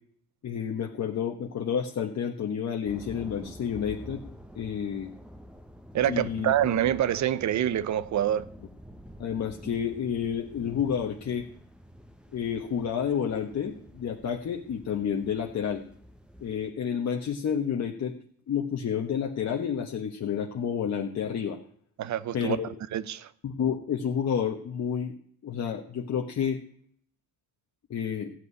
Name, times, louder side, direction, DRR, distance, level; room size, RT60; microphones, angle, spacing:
voice 1, 0.4-4.2 4.5-5.1 6.1-6.5 9.2-11.5 12.3-15.8 16.4-18.2 18.5-21.6 22.3-22.7 23.4-25.1 25.4-26.6 27.9-28.3, left 8 dB, 50° left, 1.2 m, -30 dB
sound 1, 2.9-16.7, equal, 5° right, 1.3 m, -48 dB
voice 2, 5.9-8.5 22.0-22.6 22.9-23.3, right 11 dB, 55° right, 0.8 m, -26 dB
14.5 x 5.5 x 9.7 m
cardioid pair, 95°, 34 cm